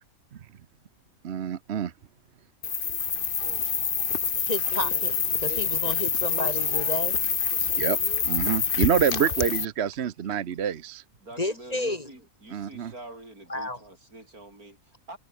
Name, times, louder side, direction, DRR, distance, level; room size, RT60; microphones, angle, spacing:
voice 1, 1.2-1.9 7.8-8.0 8.3-11.0 12.5-12.9, right 8 dB, 55° right, 1.0 m, -26 dB
sound 1, 2.6-9.6, left 7 dB, 45° left, 1.1 m, -26 dB
voice 2, 4.4-5.1 5.4-7.2 11.4-12.1 13.5-13.8, left 2 dB, 25° left, 1.8 m, -31 dB
voice 3, 11.2-15.2, right 2 dB, 85° right, 7.5 m, -46 dB
omnidirectional pair, 1.5 m